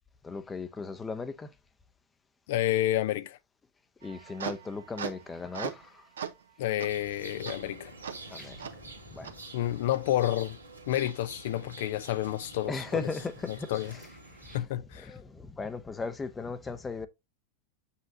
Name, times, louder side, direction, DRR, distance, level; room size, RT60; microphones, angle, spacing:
voice 1, 0.2-1.5 4.0-6.1 8.3-8.7 9.1-9.3 12.7-14.1 14.4-14.6 14.9-17.1, left 4 dB, 15° left, 0.8 m, -37 dB
voice 2, 2.5-3.4 6.6-7.9 9.5-10.6 10.9-13.0 13.5-13.9 14.5-15.1, left 13 dB, 55° left, 0.5 m, -30 dB
sound 1, 4.0-5.9 6.2-6.4 6.8-6.9 7.5-7.6 8.0-8.1 8.6-8.7 9.2-9.3 9.9-10.0, right 7 dB, 65° right, 0.9 m, -39 dB
sound 2, 6.9-14.6, right 2 dB, 85° right, 2.0 m, -47 dB
7.5 x 5.6 x 2.7 m
figure-of-eight pair, 90°, 0 cm